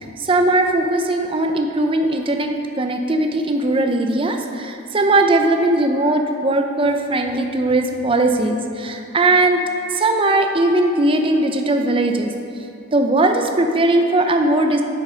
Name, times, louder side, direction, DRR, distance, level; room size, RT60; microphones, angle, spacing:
voice 1, 0.0-2.5 2.8-9.6 9.9-12.3 12.9-14.8, right 2 dB, 25° right, 4 dB, 0.5 m, -19 dB
8.5 x 8.1 x 5.6 m, 2.6 s
head